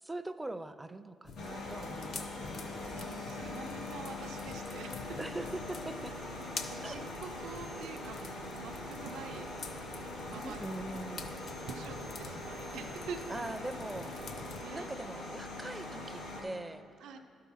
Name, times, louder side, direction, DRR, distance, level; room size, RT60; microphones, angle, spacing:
voice 1, 0.0-3.0 5.2-6.1 6.8-7.0 10.3-11.3 13.3-14.3 14.7-16.8, right 2 dB, 15° right, 11 dB, 0.4 m, -42 dB
sound 1, 1.3-14.6, left 4 dB, 60° left, 0.6 m, -47 dB
sound 2, 1.4-16.4, left 2 dB, 80° left, 2.2 m, -42 dB
voice 2, 2.9-5.2 6.7-9.5 10.3-10.6 11.7-13.2 14.6-14.9 17.0-17.2, right 6 dB, 80° right, 5 dB, 0.5 m, -46 dB
12.0 x 4.7 x 5.5 m, 2.5 s
cardioid pair, 90°, 0 cm